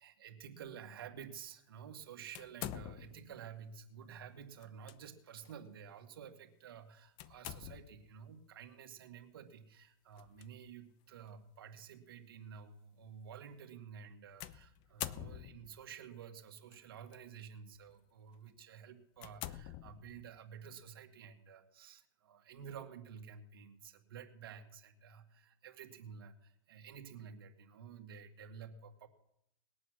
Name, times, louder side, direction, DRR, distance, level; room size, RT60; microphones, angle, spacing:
voice 1, 0.0-29.1, right 7 dB, 80° right, 5 dB, 2.1 m, -51 dB
sound 1, 2.3-3.3 4.6-5.0 5.4-5.6 7.2-8.1 10.1-10.5 11.3-11.4 14.4-15.8 16.7-17.2 17.7-17.9 18.5-18.6 19.2-20.4, left 13 dB, 45° left, 0.7 m, -46 dB
20.0 x 8.5 x 6.4 m, 0.77 s
supercardioid pair, 135°, 12 cm